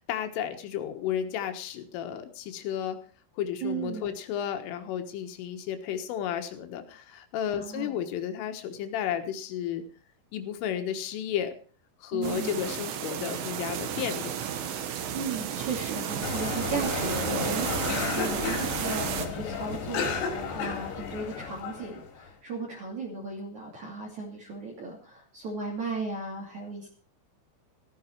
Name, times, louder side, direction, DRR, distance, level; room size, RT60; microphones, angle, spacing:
voice 1, 0.0-3.0 3.4-9.8 10.3-11.6 12.0-14.5, left 9 dB, 80° left, 7 dB, 3.9 m, -33 dB
voice 2, 3.6-4.1 7.6-7.9 12.1-12.7 15.1-26.9, right 4 dB, 45° right, -3 dB, 3.6 m, -36 dB
sound 1, 12.2-19.3, right 9 dB, 75° right, 3.9 m, -32 dB
sound 2, 16.2-22.3, left 6 dB, 65° left, 4.2 m, -33 dB
15.0 x 14.0 x 4.6 m, 0.42 s
omnidirectional pair, 5.7 m